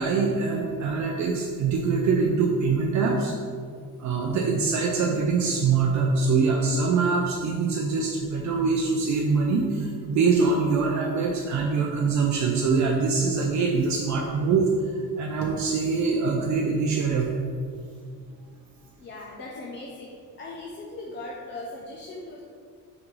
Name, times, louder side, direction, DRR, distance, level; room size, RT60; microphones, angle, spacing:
voice 1, 0.0-3.3 4.0-14.7 15.2-17.3, right 4 dB, 50° right, 0 dB, 0.5 m, -24 dB
voice 2, 19.0-22.4, left 2 dB, 30° left, -3 dB, 0.5 m, -39 dB
6.1 x 5.1 x 3.2 m, 2.1 s
cardioid pair, 180°, 36 cm